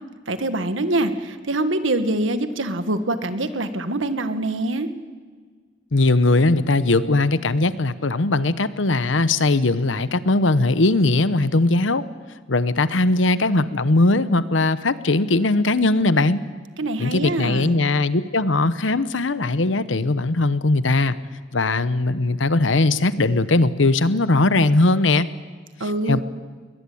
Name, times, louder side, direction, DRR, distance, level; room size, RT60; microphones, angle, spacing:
voice 1, 0.3-4.9 16.8-17.8 25.8-26.2, right 1 dB, 90° right, 10 dB, 1.7 m, -24 dB
voice 2, 5.9-12.0 12.5-16.4 17.0-21.2 21.5-25.3 26.1-26.2, left 2 dB, 75° left, 15 dB, 1.0 m, -19 dB
21.5 x 20.0 x 8.6 m, 1.5 s
head